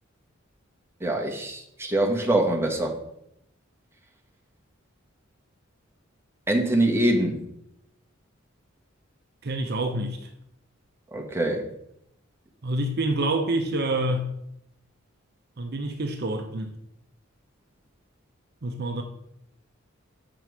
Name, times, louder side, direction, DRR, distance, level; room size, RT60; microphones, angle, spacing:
voice 1, 1.0-2.9 6.5-7.4 11.1-11.7, right 1 dB, 10° right, 1.1 m, -24 dB
voice 2, 9.4-10.2 12.6-14.3 15.6-16.7 18.6-19.0, right 1 dB, 50° right, 0.7 m, -27 dB
6.9 x 6.0 x 4.7 m
head